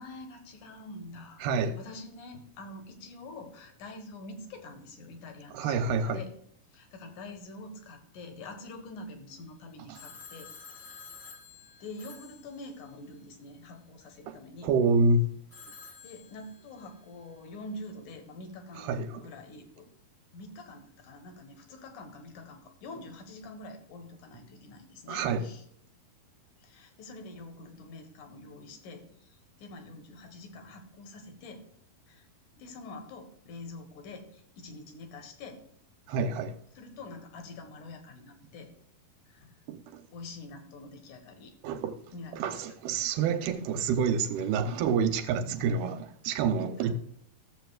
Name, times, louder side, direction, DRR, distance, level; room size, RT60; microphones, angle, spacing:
voice 1, 0.0-6.3 6.7-10.5 10.8-11.1 11.8-14.7 15.8-19.9 20.3-25.6 26.6-31.6 32.1-32.3 32.6-35.6 36.7-38.7 39.3-39.5 40.1-41.5 42.1-42.8 46.7-46.9, left 2 dB, 60° left, 2.6 m, -46 dB
voice 2, 1.4-1.8 5.5-6.2 9.9-10.0 14.3-14.4 14.6-15.3 18.8-19.2 25.1-25.5 36.1-36.5 39.7-40.0 41.6-42.0 42.4-46.9, right 4 dB, 90° right, 2.8 m, -28 dB
Telephone, 9.9-13.2 15.5-17.0, left 5 dB, 40° left, 1.7 m, -50 dB
15.5 x 7.7 x 2.3 m
omnidirectional pair, 4.4 m